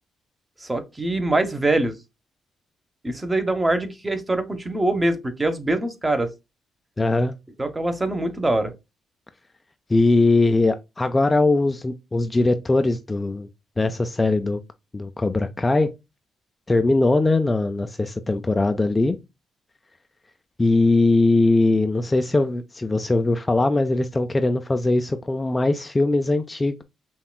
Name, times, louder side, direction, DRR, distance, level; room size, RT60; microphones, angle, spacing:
voice 1, 0.6-2.0 3.0-6.3 7.6-8.7, right 2 dB, 20° right, 0.8 m, -23 dB
voice 2, 7.0-7.3 9.9-13.5 13.8-14.6 14.9-15.9 16.7-19.2 20.6-26.8, left 2 dB, 20° left, 0.3 m, -20 dB
5.5 x 2.3 x 2.2 m
cardioid pair, 80°, 0 cm